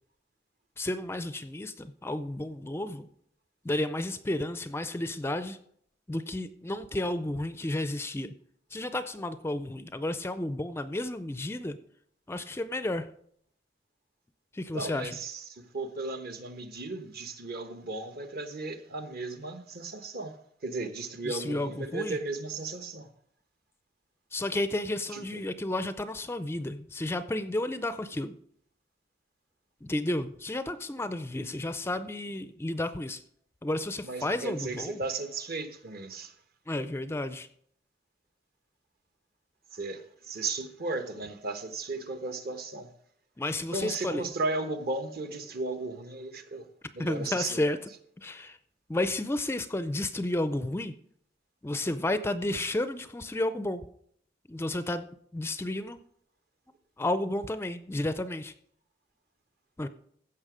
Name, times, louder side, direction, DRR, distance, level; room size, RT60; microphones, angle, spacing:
voice 1, 0.8-3.1 3.6-5.6 6.1-8.3 8.7-11.8 12.3-13.1 14.5-15.1 21.3-22.2 24.3-28.3 29.8-33.2 33.6-35.0 36.7-37.5 43.4-44.3 47.0-47.8 48.2-48.6 48.9-50.9 51.6-53.8 54.5-55.0 55.3-56.0 57.0-58.5 59.8-59.9, left 1 dB, 15° left, 0.4 m, -32 dB
voice 2, 14.7-20.4 20.6-23.1 25.1-25.4 34.0-36.3 39.7-42.9 43.7-46.7 46.9-47.8, right 3 dB, 55° right, 1.1 m, -35 dB
15.5 x 5.9 x 5.0 m
head